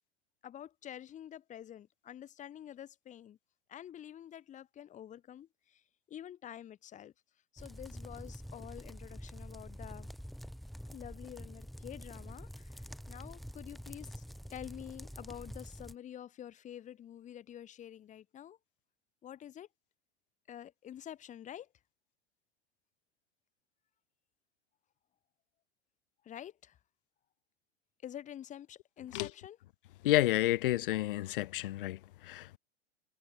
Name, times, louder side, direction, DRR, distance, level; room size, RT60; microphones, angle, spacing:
voice 1, 0.4-3.4 3.7-5.8 6.1-7.1 7.5-10.1 10.9-14.2 14.5-18.6 19.2-19.7 20.5-21.7 26.2-26.8 28.0-29.6, left 10 dB, 20° left, 1.6 m, -48 dB
sound 1, 7.6-15.9, equal, ahead, 2.4 m, -47 dB
voice 2, 30.0-32.6, left 15 dB, 50° left, 0.6 m, -30 dB
figure-of-eight pair, 100°, 34 cm